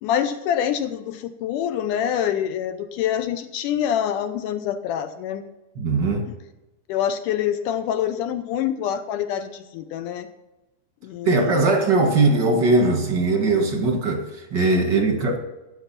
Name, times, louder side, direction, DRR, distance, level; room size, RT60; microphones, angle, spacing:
voice 1, 0.0-5.4 6.3-6.4 6.9-10.3 11.0-11.6, left 9 dB, 85° left, 10 dB, 1.8 m, -26 dB
voice 2, 5.8-6.3 11.2-15.4, right 3 dB, 50° right, 2 dB, 1.3 m, -20 dB
15.5 x 8.3 x 5.7 m, 1.0 s
omnidirectional pair, 4.5 m